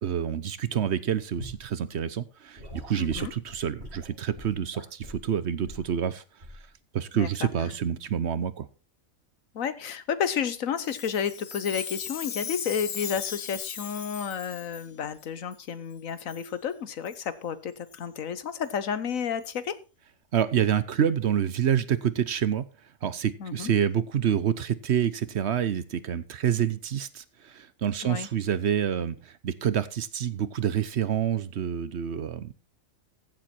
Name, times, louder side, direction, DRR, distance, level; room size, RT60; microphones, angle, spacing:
voice 1, 0.0-2.6 2.9-6.2 6.9-8.7 20.3-22.6 23.0-32.5, right 9 dB, 60° right, 16 dB, 1.0 m, -27 dB
Gurgling / Sink (filling or washing) / Liquid, 1.4-1.6 2.6-5.3 5.6-5.9 6.4-6.7 7.6-7.8, equal, 45° right, 6.1 m, -43 dB
voice 2, 3.0-3.3 7.1-7.5 9.5-19.7 23.4-23.7 28.0-28.3, left 7 dB, 80° left, 14 dB, 1.4 m, -31 dB
Chime, 10.8-14.9 15.5-15.6 16.3-16.5 17.0-17.2 17.9-18.0 18.6-18.7 19.5-19.6, left 7 dB, 45° left, 0.9 m, -38 dB
15.0 x 7.6 x 4.3 m, 0.32 s
omnidirectional pair, 1.4 m